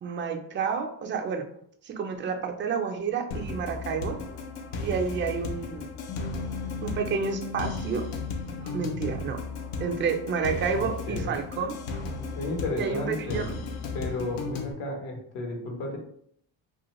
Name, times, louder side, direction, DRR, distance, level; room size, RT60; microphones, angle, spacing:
voice 1, 0.0-1.5 1.8-4.2 4.8-5.9 6.8-8.1 8.6-9.4 9.8-12.0 12.8-13.5, right 6 dB, 25° right, 5 dB, 0.3 m, -30 dB
sound 1, 3.3-14.7, left 3 dB, 90° left, 0.6 m, -35 dB
Bass guitar, 6.1-12.3, left 5 dB, 40° left, 0.4 m, -42 dB
voice 2, 10.7-11.3 12.3-13.5 13.9-16.0, left 2 dB, 75° left, 1 dB, 1.0 m, -33 dB
2.4 x 2.4 x 2.9 m, 0.67 s
cardioid pair, 80°, 48 cm